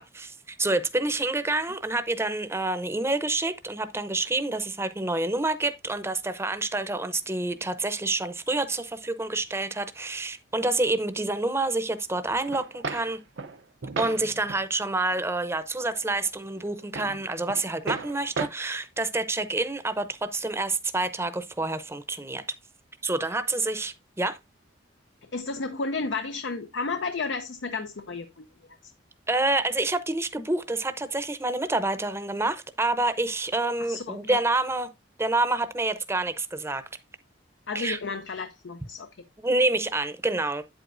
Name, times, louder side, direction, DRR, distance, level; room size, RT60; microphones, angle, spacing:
voice 1, 0.0-13.2 14.0-22.4 23.0-24.4 29.3-34.9 35.2-36.8 37.7-38.0 39.4-40.6, right 2 dB, 15° right, 0.7 m, -28 dB
sound 1, 12.3-14.6 15.1-15.3 15.8-16.3 16.6-18.5, right 4 dB, 70° right, 0.7 m, -36 dB
voice 2, 25.2-28.4 28.8-28.9 33.8-34.4 37.7-39.2, left 4 dB, 75° left, 0.6 m, -32 dB
8.4 x 7.9 x 2.6 m
head